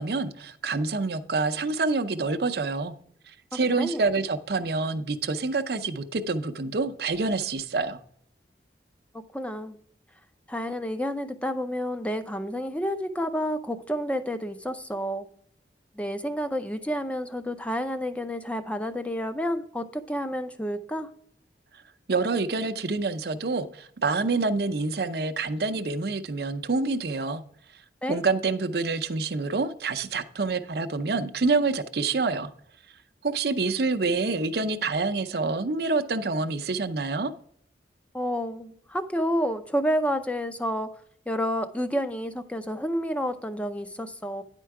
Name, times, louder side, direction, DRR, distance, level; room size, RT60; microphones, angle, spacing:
voice 1, 0.0-3.0 3.3-8.0 22.1-27.4 28.1-32.5 33.2-37.3, right 3 dB, 60° right, 0.6 m, -27 dB
voice 2, 3.5-4.0 9.3-9.8 10.5-15.3 16.0-21.1 28.0-28.2 38.1-40.9 41.3-44.4, equal, 5° left, 0.5 m, -29 dB
10.0 x 4.5 x 4.7 m
head